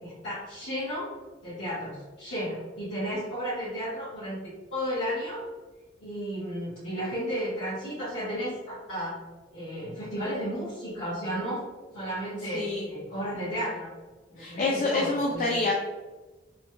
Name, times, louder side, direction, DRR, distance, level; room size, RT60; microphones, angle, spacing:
voice 1, 0.0-1.1 1.4-5.4 6.0-9.2 9.5-11.6 11.9-13.9 14.3-15.5, equal, 85° left, -14 dB, 1.3 m, -33 dB
voice 2, 12.5-12.9 14.4-15.7, left 2 dB, 45° left, -1 dB, 0.4 m, -27 dB
3.2 x 2.2 x 3.0 m, 1.2 s
head